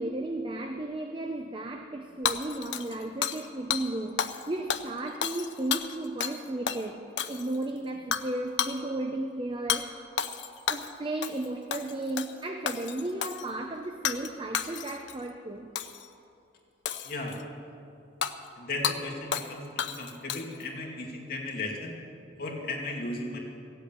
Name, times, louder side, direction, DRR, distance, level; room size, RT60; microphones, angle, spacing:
voice 1, 0.0-10.0 10.7-15.7, right 2 dB, 25° right, 5 dB, 0.6 m, -34 dB
Hammer / Shatter, 2.3-3.5 3.7-3.8 4.2-4.4 4.7-6.4 6.7-6.8 7.2-7.6 8.1-8.3 8.6-8.8 9.7-9.8 10.2-10.9 11.2-11.5 11.7-12.3 12.7-13.5 14.0-14.3 14.5-15.1 15.8-16.1 16.9-17.4 18.2-18.3 18.8-19.0 19.3-19.5 19.8-20.6, left 8 dB, 75° left, 0.7 m, -31 dB
voice 2, 17.1-17.4 18.6-21.9 22.4-23.4, left 2 dB, 55° left, -1 dB, 2.3 m, -36 dB
16.0 x 8.0 x 8.7 m, 2.6 s
head